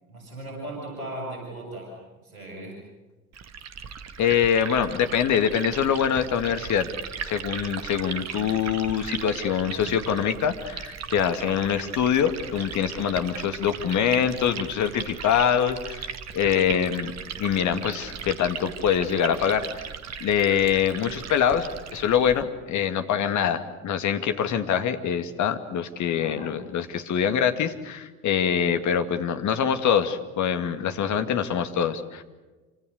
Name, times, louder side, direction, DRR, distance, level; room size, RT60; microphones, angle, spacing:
voice 1, 0.1-1.9 2.2-2.8 26.2-26.6, right 1 dB, 80° right, -1 dB, 7.1 m, -37 dB
Liquid, 3.3-22.4, right 7 dB, 35° right, 2.2 m, -37 dB
voice 2, 4.2-6.9 7.2-19.7 20.2-32.2, left 8 dB, 40° left, 8 dB, 2.4 m, -24 dB
27.5 x 25.5 x 6.7 m, 1.2 s
figure-of-eight pair, 60°, 43 cm